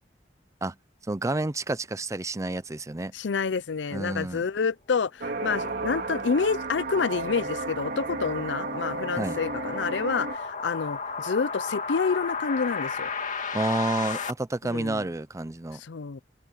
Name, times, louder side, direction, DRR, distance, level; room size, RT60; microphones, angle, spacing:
voice 1, 1.1-3.1 3.9-4.4 9.2-9.4 13.5-15.8, right 2 dB, 15° right, 0.5 m, -29 dB
voice 2, 3.1-13.1 14.6-15.0 15.7-16.2, left 5 dB, 75° left, 0.5 m, -28 dB
sound 1, 5.2-10.4, right 3 dB, 55° right, 2.9 m, -33 dB
sound 2, 6.0-14.3, left 5 dB, 45° left, 2.4 m, -35 dB
open air
head